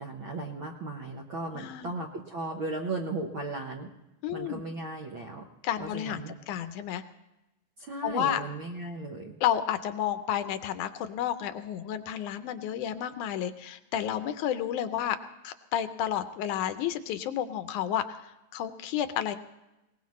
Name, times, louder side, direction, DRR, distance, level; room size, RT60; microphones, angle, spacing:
voice 1, 0.0-3.9 4.3-5.4 5.8-6.4 7.8-9.3, right 2 dB, 65° right, 1 dB, 1.3 m, -36 dB
voice 2, 1.5-1.9 4.2-4.6 5.6-6.2 6.5-7.0 8.0-8.4 9.4-15.2 15.4-19.4, left 10 dB, 80° left, 10 dB, 2.1 m, -31 dB
21.5 x 19.5 x 3.1 m, 0.97 s
omnidirectional pair, 3.7 m